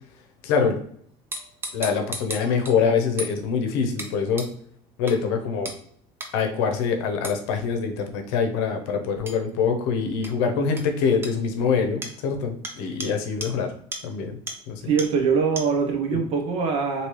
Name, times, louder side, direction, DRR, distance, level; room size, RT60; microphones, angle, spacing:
voice 1, 0.4-0.8 1.7-4.4 5.0-5.7 6.3-13.7 14.0-14.4 14.7-14.9, left 6 dB, 85° left, 0.7 m, -24 dB
sound 1, 1.3-2.8 3.2-3.4 4.0-4.1 4.4-4.5 5.1-5.2 5.7-5.8 6.2-6.3 7.2-7.4 9.3-9.4 10.2-10.3 10.8-10.9 11.2-11.3 12.0-12.2 12.6-12.7 13.0-13.1 13.4-13.5 13.9-14.0 14.5-14.6 15.0-15.1 15.6-15.7, right 2 dB, 20° right, 0.5 m, -33 dB
voice 2, 14.8-17.1, right 5 dB, 50° right, 0.7 m, -23 dB
3.1 x 2.7 x 3.0 m
cardioid pair, 135°, 13 cm